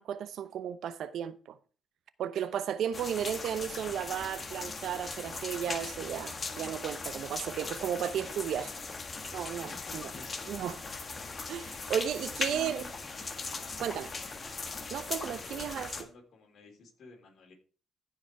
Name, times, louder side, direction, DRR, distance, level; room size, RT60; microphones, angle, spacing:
voice 1, 0.0-1.6 2.2-8.7 9.3-10.1 10.5-10.8 11.5-12.8 13.8-14.1 14.9-15.9, right 9 dB, 75° right, 0.8 m, -34 dB
sound 1, 2.9-16.0, left 4 dB, 35° left, 1.6 m, -39 dB
voice 2, 8.5-8.9 9.6-10.5 12.4-12.9 13.6-13.9 15.3-17.5, left 2 dB, 60° left, 3.8 m, -51 dB
14.5 x 5.1 x 4.6 m
cardioid pair, 90°, 0 cm